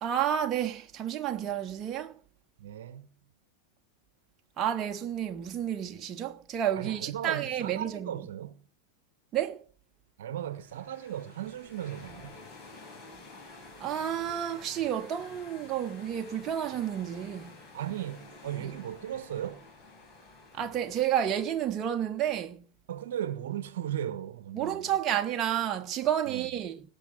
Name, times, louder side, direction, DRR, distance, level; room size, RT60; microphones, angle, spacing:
voice 1, 0.0-2.1 4.6-8.1 9.3-9.6 13.8-17.6 18.6-18.7 20.5-22.6 24.5-26.8, right 10 dB, 30° right, 1.2 m, -30 dB
voice 2, 2.6-3.1 6.8-8.6 10.2-12.4 17.7-19.6 22.9-24.9 26.3-26.5, right 10 dB, 55° right, 1.2 m, -37 dB
sound 1, 10.4-21.7, left 3 dB, 35° left, 5.9 m, -51 dB
18.0 x 6.7 x 8.0 m
figure-of-eight pair, 90°, 0 cm